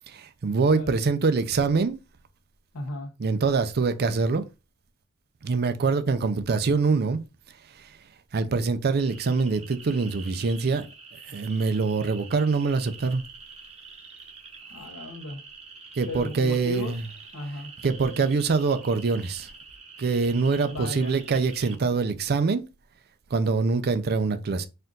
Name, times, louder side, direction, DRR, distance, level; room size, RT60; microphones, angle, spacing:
voice 1, 0.1-2.0 3.2-4.4 5.4-7.2 8.3-10.8 11.3-13.2 16.0-17.0 17.8-19.5 20.0-22.6 23.3-24.7, right 4 dB, 45° right, 0.5 m, -24 dB
voice 2, 2.7-3.1 14.7-15.4 16.1-16.9 17.3-17.7 20.6-21.2, equal, 75° left, 1.0 m, -35 dB
sound 1, 9.0-21.8, right 4 dB, 30° right, 0.8 m, -46 dB
4.4 x 2.5 x 3.8 m
head